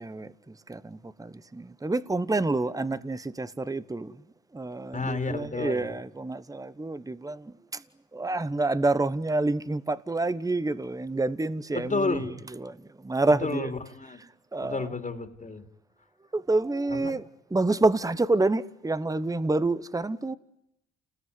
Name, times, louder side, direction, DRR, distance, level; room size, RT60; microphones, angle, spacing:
voice 1, 0.0-4.2 4.5-7.8 8.1-13.7 14.5-14.9 16.3-17.2 17.5-20.4, right 2 dB, 10° right, 1.2 m, -28 dB
voice 2, 4.9-5.9 11.7-12.3 13.4-14.2 14.6-15.6 16.9-17.1, left 3 dB, 25° left, 3.2 m, -31 dB
29.5 x 20.5 x 9.7 m
cardioid pair, 90°, 30 cm